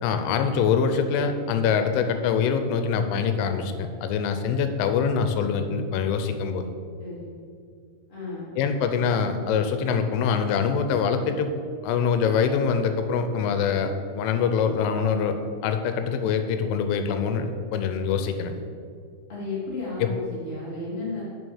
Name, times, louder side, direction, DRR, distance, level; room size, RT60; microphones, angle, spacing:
voice 1, 0.0-6.7 8.6-11.5 11.8-15.4 15.6-18.6 20.0-20.1, left 6 dB, 85° left, 8 dB, 3.1 m, -24 dB
voice 2, 7.0-7.3 8.1-8.6 19.3-21.2, left 3 dB, 55° left, -7 dB, 0.6 m, -33 dB
6.9 x 6.4 x 6.2 m, 2.3 s
omnidirectional pair, 5.7 m